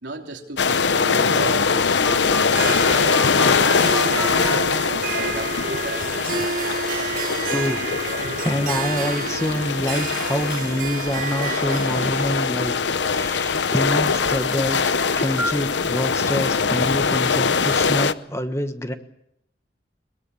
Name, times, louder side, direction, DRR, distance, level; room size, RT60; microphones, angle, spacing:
voice 1, 0.0-4.4 4.8-6.2, right 2 dB, 85° right, 2 dB, 3.2 m, -34 dB
sound 1, 0.6-18.1, left 5 dB, 85° left, 0.8 m, -22 dB
Telephone, 2.0-4.6 5.6-6.2 8.2-9.2 11.2-12.2 14.2-15.5, right 1 dB, 5° right, 1.7 m, -33 dB
Harp, 2.5-14.3, right 4 dB, 50° right, 1.7 m, -31 dB
voice 2, 7.5-7.8 8.4-12.8 13.0-18.9, equal, 15° left, 8 dB, 1.3 m, -26 dB
22.5 x 22.0 x 7.1 m, 0.77 s
head